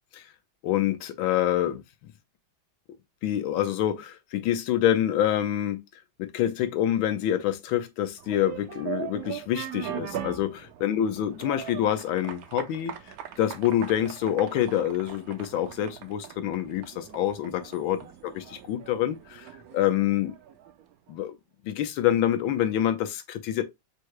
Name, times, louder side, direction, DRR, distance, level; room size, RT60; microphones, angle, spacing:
voice 1, 0.6-1.8 3.2-5.8 6.2-12.9 13.4-20.3 21.1-21.3 21.6-23.6, left 11 dB, 85° left, 1.5 m, -26 dB
sound 1, 8.2-20.9, right 11 dB, 65° right, 0.9 m, -40 dB
4.7 x 2.1 x 4.7 m
omnidirectional pair, 2.2 m